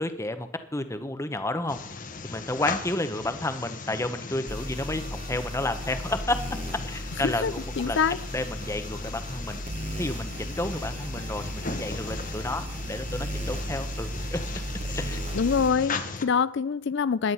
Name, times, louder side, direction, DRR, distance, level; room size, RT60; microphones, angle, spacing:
voice 1, 0.0-1.8 2.2-6.4 6.9-8.0 8.3-9.6 10.0-14.4 14.9-15.2, left 1 dB, 15° left, 0.8 m, -31 dB
sound 1, 1.7-16.2, left 4 dB, 35° left, 1.1 m, -38 dB
sound 2, 4.5-15.7, right 1 dB, 30° right, 0.9 m, -36 dB
voice 2, 7.2-8.2 15.3-17.3, left 6 dB, 50° left, 0.4 m, -25 dB
14.0 x 10.5 x 5.6 m
head